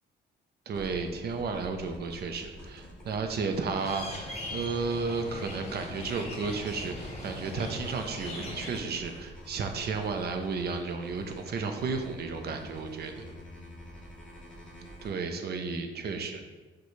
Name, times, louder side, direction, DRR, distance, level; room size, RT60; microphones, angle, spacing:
sound 1, 0.7-15.1, equal, 5° left, 1.0 m, -47 dB
voice 1, 0.7-13.3 15.0-16.4, right 4 dB, 55° right, 5 dB, 0.5 m, -33 dB
sound 2, 3.7-8.8, left 2 dB, 35° left, 0.9 m, -40 dB
6.0 x 2.2 x 3.1 m, 1.3 s
cardioid pair, 90°, 20 cm